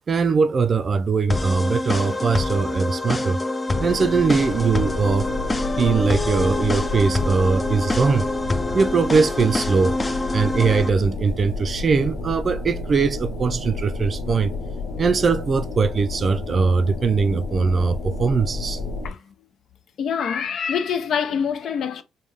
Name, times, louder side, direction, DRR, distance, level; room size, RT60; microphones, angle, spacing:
voice 1, 0.1-3.4 3.8-5.3 5.8-8.3 8.7-9.9 10.3-14.5 15.0-18.8, right 5 dB, 45° right, 0.4 m, -21 dB
sound 1, 1.3-10.9, left 2 dB, 20° left, 0.5 m, -26 dB
sound 2, 3.7-19.1, left 3 dB, 85° left, 1.4 m, -31 dB
voice 2, 19.0-19.3 20.0-22.0, left 7 dB, 65° left, 0.6 m, -25 dB
5.1 x 2.2 x 3.4 m
cardioid pair, 90°, 0 cm